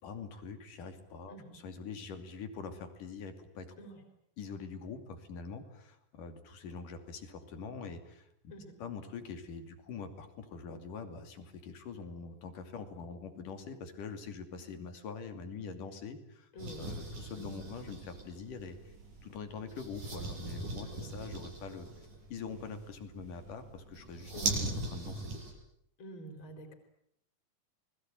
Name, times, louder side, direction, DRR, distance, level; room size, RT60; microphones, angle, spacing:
voice 1, 0.0-3.7 4.4-8.3 8.8-16.5 16.8-19.0 19.2-21.9 22.3-24.3 24.6-25.4, left 5 dB, 85° left, 8 dB, 4.3 m, -44 dB
voice 2, 16.5-17.0 17.4-17.6 20.8-21.1 24.3-24.6 26.0-26.7, equal, 40° left, 5 dB, 4.9 m, -48 dB
sound 1, 16.6-25.5, right 2 dB, 75° right, 8.4 m, -40 dB
29.0 x 21.5 x 9.1 m, 0.73 s
omnidirectional pair, 3.6 m